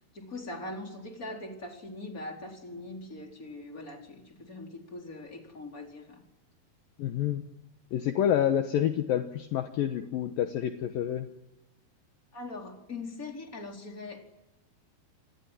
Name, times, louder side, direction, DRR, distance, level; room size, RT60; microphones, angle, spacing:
voice 1, 0.1-6.2 12.3-14.3, left 2 dB, 20° left, 4.4 m, -41 dB
voice 2, 7.0-7.4 7.9-11.3, left 10 dB, 70° left, 2.7 m, -28 dB
28.0 x 21.0 x 10.0 m
omnidirectional pair, 4.5 m